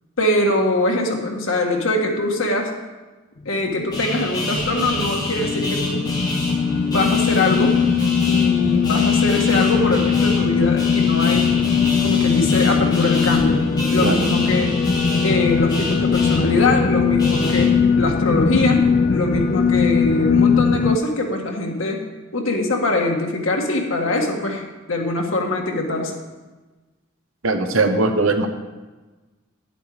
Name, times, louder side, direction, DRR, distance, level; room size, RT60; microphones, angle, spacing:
voice 1, 0.2-2.7 3.4-6.1 6.8-7.8 8.3-11.6 12.0-13.6 13.9-14.8 15.2-18.8 19.1-22.0 22.3-26.1, left 2 dB, 80° left, 1 dB, 1.7 m, -22 dB
sound 1, 3.7-21.0, left 6 dB, 40° left, 0.3 m, -20 dB
sound 2, 3.9-17.6, left 1 dB, 20° left, 2.7 m, -27 dB
voice 2, 27.4-28.5, right 3 dB, 85° right, 6 dB, 1.0 m, -19 dB
10.5 x 7.9 x 5.0 m, 1.2 s
head